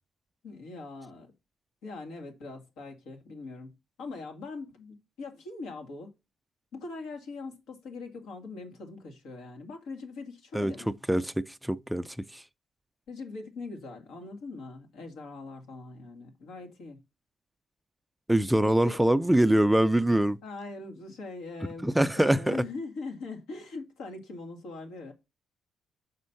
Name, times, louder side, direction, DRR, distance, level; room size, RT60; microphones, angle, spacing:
voice 1, 0.4-1.3 1.8-6.1 6.7-10.9 13.1-17.0 18.6-19.0 20.4-25.1, left 3 dB, 85° left, 1.8 m, -41 dB
voice 2, 10.5-12.4 18.3-20.4 21.8-22.6, right 1 dB, 5° right, 0.4 m, -24 dB
6.2 x 4.3 x 5.6 m
cardioid pair, 90°, 0 cm